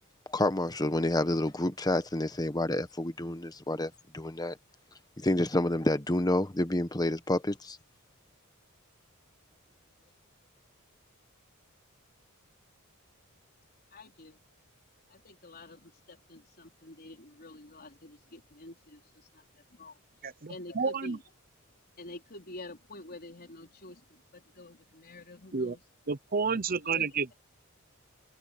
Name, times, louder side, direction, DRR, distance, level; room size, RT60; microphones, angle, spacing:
voice 1, 0.3-4.6 5.2-7.8, left 1 dB, 20° left, 1.2 m, -29 dB
voice 2, 13.9-14.4 15.1-21.2 22.0-25.8 26.8-27.2, left 2 dB, 45° left, 4.6 m, -48 dB
voice 3, 20.2-21.2 25.5-25.7 26.1-27.4, right 5 dB, 45° right, 0.7 m, -30 dB
head